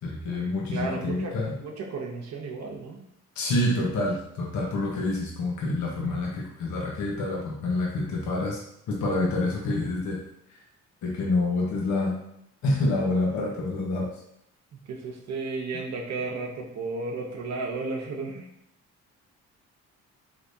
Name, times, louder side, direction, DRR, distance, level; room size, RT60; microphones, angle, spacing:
voice 1, 0.0-1.6 3.4-8.6 8.9-10.2 10.5-10.6 11.0-12.2 12.6-14.1, left 2 dB, 75° left, -3 dB, 0.9 m, -27 dB
voice 2, 0.7-3.0 14.9-18.5, right 3 dB, 60° right, 0 dB, 0.8 m, -33 dB
3.3 x 2.9 x 2.6 m, 0.73 s
cardioid pair, 90°, 30 cm